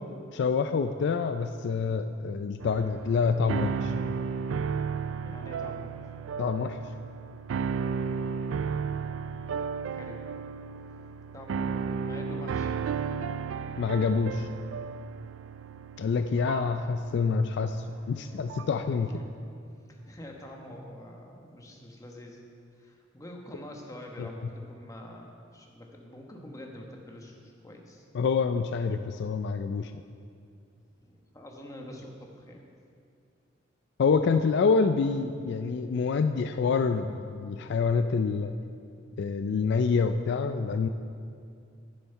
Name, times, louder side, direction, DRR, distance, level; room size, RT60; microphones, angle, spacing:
voice 1, 0.3-3.9 6.4-6.8 13.8-14.5 16.0-19.1 28.1-29.9 34.0-38.5 39.2-40.9, left 5 dB, 60° left, 9 dB, 0.3 m, -27 dB
sound 1, 2.6-18.9, right 6 dB, 90° right, 0.3 m, -34 dB
voice 2, 5.2-6.0 9.9-10.2 11.3-12.8 19.0-19.3 19.9-22.4 22.8-28.1 31.0-32.6, left 1 dB, 15° left, 0 dB, 1.2 m, -45 dB
10.5 x 7.2 x 5.6 m, 2.4 s
head